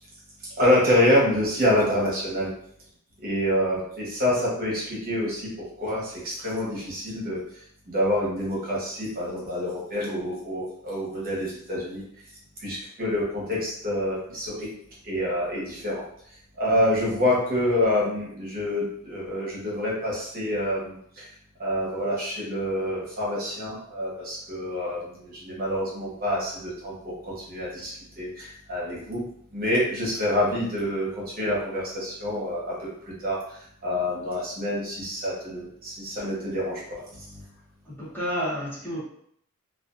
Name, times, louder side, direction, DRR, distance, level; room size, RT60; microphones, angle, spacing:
voice 1, 0.6-2.5 3.2-7.4 7.9-12.0 12.6-14.7 15.0-16.0 16.6-21.3 21.6-27.9 28.2-29.2 29.5-31.1 31.4-32.7 33.2-33.4 33.8-36.8 37.1-37.2, left 1 dB, 45° right, -5 dB, 0.9 m, -27 dB
voice 2, 37.9-39.0, equal, 10° left, -7 dB, 0.6 m, -30 dB
2.4 x 2.3 x 2.4 m, 0.67 s
head